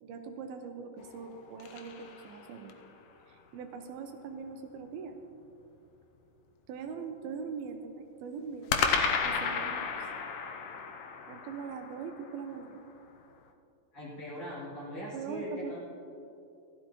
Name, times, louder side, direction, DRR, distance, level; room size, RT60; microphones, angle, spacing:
voice 1, 0.0-2.8 3.3-5.2 6.7-8.8 9.2-9.9 11.3-12.8 15.1-15.8, right 6 dB, 80° right, 5 dB, 2.4 m, -41 dB
sound 1, 1.0-2.9 8.7-13.0, left 6 dB, 85° left, 1.7 m, -33 dB
voice 2, 13.9-15.8, left 1 dB, 35° left, -8 dB, 3.7 m, -40 dB
15.5 x 13.0 x 3.0 m, 2.7 s
omnidirectional pair, 4.6 m